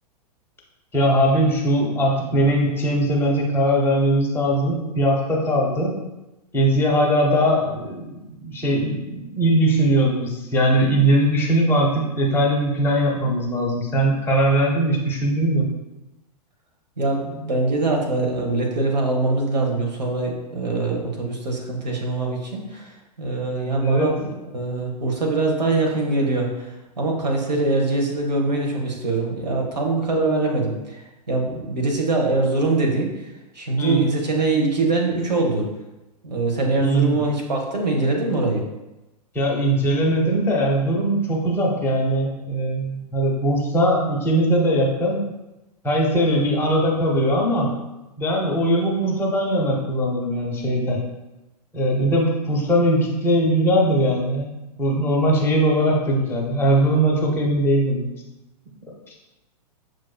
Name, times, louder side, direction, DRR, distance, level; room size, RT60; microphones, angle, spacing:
voice 1, 0.9-6.0 6.5-15.6 23.8-24.1 33.8-34.0 36.7-37.2 39.3-45.2 45.8-47.7 48.2-51.0 51.7-54.5 54.8-58.1, right 1 dB, 10° left, -2 dB, 0.8 m, -20 dB
voice 2, 17.0-35.7 36.2-38.6, right 2 dB, 80° right, 0 dB, 0.9 m, -23 dB
6.1 x 2.5 x 2.2 m, 1.0 s
figure-of-eight pair, 105°, 21 cm